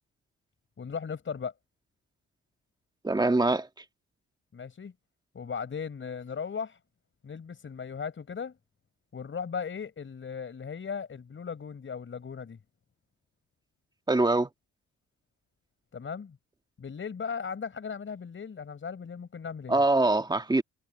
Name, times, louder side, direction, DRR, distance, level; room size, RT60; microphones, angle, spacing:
voice 1, 0.8-1.5 4.5-4.9 5.3-6.8 7.2-8.6 9.1-12.6 15.9-16.4 16.8-19.8, left 6 dB, 40° left, 5.6 m, -37 dB
voice 2, 3.0-3.7 14.1-14.5 19.7-20.6, right 2 dB, 15° right, 1.7 m, -23 dB
cardioid pair, 90°, 30 cm